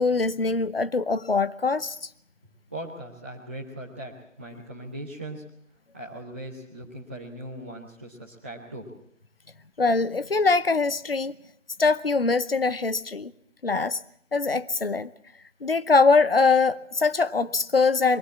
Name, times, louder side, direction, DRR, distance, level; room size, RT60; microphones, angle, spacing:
voice 1, 0.0-2.0 9.8-11.3 11.8-13.3 13.6-14.0 14.3-15.1 15.6-18.2, left 4 dB, 50° left, 0.9 m, -22 dB
voice 2, 2.7-5.6 5.9-8.9, right 1 dB, 10° right, 1.1 m, -39 dB
22.5 x 16.5 x 7.4 m
figure-of-eight pair, 160°, 38 cm